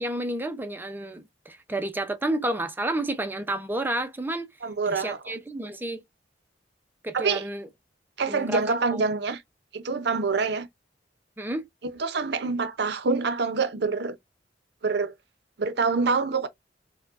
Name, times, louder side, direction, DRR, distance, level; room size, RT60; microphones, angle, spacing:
voice 1, 0.0-4.5 4.9-6.0 7.0-7.7 8.3-9.0 11.4-11.6, right 1 dB, 10° right, 0.4 m, -30 dB
voice 2, 4.6-5.3 7.1-7.4 8.2-9.4 9.7-10.7 11.9-14.2 14.8-15.1 15.6-16.5, right 4 dB, 65° right, 0.6 m, -26 dB
4.5 x 2.2 x 2.4 m
head